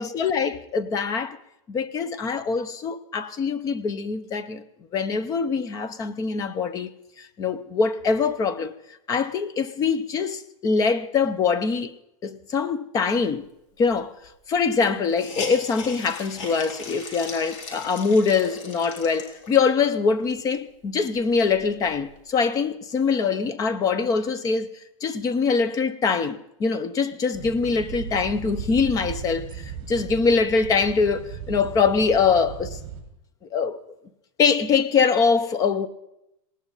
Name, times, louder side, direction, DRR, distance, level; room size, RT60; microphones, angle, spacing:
voice 1, 0.0-1.4 1.7-4.6 4.9-6.9 7.2-8.7 9.1-11.9 12.2-13.5 13.8-14.1 14.5-24.7 25.0-32.8 33.5-33.8 34.4-35.9, left 5 dB, 20° left, 0.8 m, -23 dB
Hiss, 13.9-14.0 14.2-14.3 14.8-19.8 20.4-20.5 20.8-22.2, left 4 dB, 60° left, 4.4 m, -39 dB
sound 1, 27.3-33.0, right 8 dB, 35° right, 4.6 m, -36 dB
19.5 x 18.5 x 4.1 m
supercardioid pair, 160°, 17 cm